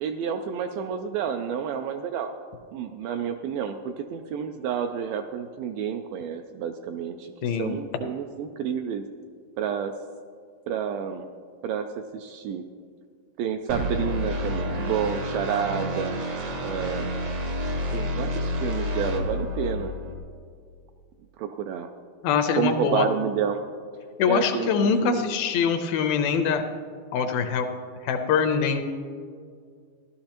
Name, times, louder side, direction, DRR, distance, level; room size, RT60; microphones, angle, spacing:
voice 1, 0.0-2.3 2.7-9.0 9.6-9.9 10.7-11.3 11.6-11.9 12.1-12.6 13.4-16.2 16.6-17.2 17.9-19.9 21.4-21.9 22.5-23.6 24.3-25.2, right 7 dB, 85° right, 6 dB, 2.1 m, -29 dB
voice 2, 7.4-7.8 22.2-23.1 24.2-26.6 27.1-27.7 28.0-28.8, left 6 dB, 80° left, 6 dB, 2.3 m, -23 dB
sound 1, 13.7-20.2, left 1 dB, 65° right, 1.4 m, -29 dB
15.0 x 12.0 x 2.9 m, 2.1 s
omnidirectional pair, 4.4 m